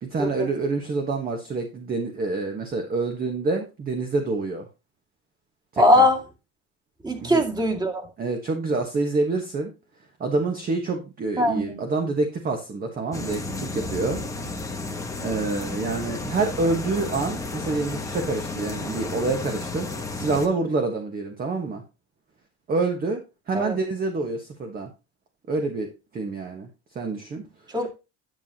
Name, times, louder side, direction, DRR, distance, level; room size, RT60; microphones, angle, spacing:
voice 1, 0.0-4.7 5.7-6.1 7.2-7.4 8.2-9.7 10.2-14.2 15.2-21.8 22.7-23.2 23.5-24.9 25.5-26.7 26.9-27.5, right 3 dB, 30° right, 1.4 m, -27 dB
voice 2, 5.8-6.2 7.0-8.1 11.4-11.8 23.5-23.7 27.7-27.9, left 1 dB, 15° right, 2.1 m, -21 dB
sound 1, 13.1-20.5, left 3 dB, 10° left, 1.3 m, -32 dB
10.5 x 7.1 x 2.9 m
cardioid pair, 130°, 31 cm